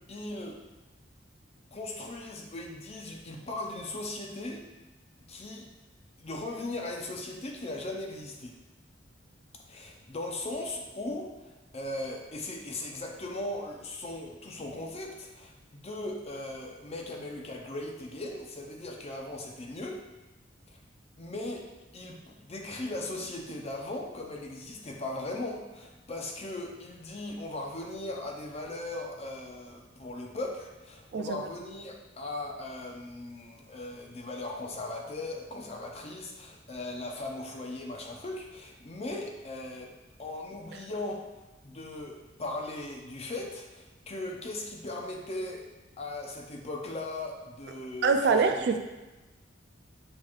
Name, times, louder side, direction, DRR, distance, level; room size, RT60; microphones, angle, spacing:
voice 1, 0.1-0.6 1.7-4.7 5.3-5.7 6.2-8.5 9.7-15.5 15.8-20.0 21.2-21.7 21.9-39.9 40.2-41.2 41.6-45.6 46.0-48.8, left 2 dB, 35° left, 0 dB, 0.6 m, -38 dB
voice 2, 31.1-31.4 48.0-48.8, right 4 dB, 65° right, 6 dB, 0.3 m, -24 dB
6.3 x 3.1 x 2.4 m, 1.1 s
head